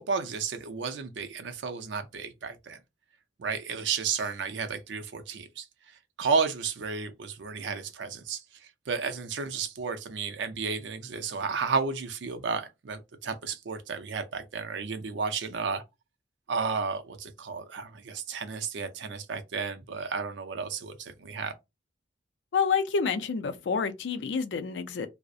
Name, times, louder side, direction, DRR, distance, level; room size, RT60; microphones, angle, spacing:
voice 1, 0.0-2.8 3.4-5.6 6.2-8.4 8.9-15.8 16.5-21.5, right 5 dB, 75° right, 0.5 m, -32 dB
voice 2, 22.5-25.1, left 5 dB, 75° left, 0.4 m, -28 dB
2.4 x 2.0 x 2.6 m
head